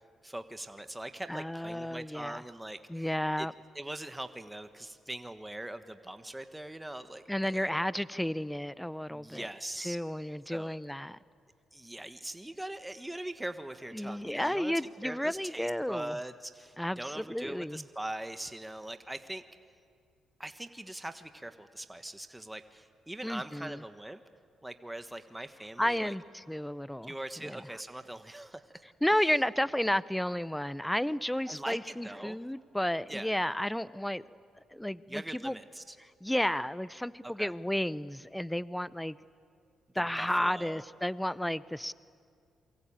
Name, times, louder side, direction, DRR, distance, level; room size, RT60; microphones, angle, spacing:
voice 1, 0.0-3.1 3.4-3.5 3.7-7.9 9.1-10.0 10.5-10.7 11.7-14.7 15.0-19.4 20.4-24.2 24.6-26.1 27.0-28.8 31.5-32.4 33.1-33.3 35.1-36.0 37.2-37.5 40.2-40.8, right 1 dB, 10° right, 9 dB, 1.4 m, -42 dB
voice 2, 1.3-2.4 2.9-3.5 7.3-9.5 9.8-11.2 13.9-16.2 16.8-17.8 23.2-23.8 25.8-27.6 29.0-34.2 34.7-35.5 36.2-39.2 39.9-41.9, left 1 dB, 5° left, 18 dB, 0.6 m, -32 dB
27.5 x 23.5 x 8.9 m, 2.3 s
supercardioid pair, 65°, 0 cm